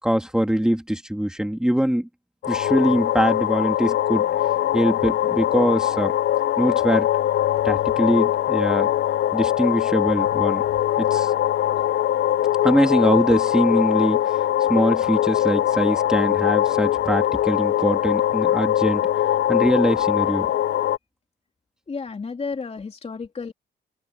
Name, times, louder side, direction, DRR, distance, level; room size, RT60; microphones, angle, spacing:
voice 1, 0.0-2.1 2.5-4.4 4.7-6.1 6.6-7.1 7.6-8.9 9.3-10.6 11.0-11.3 12.6-14.2 14.6-19.1 19.5-20.5, equal, 5° right, 3.0 m, -22 dB
sound 1, 2.4-21.0, left 12 dB, 60° left, 0.6 m, -22 dB
voice 2, 21.9-23.5, left 4 dB, 30° left, 3.3 m, -32 dB
open air
cardioid pair, 90°, 20 cm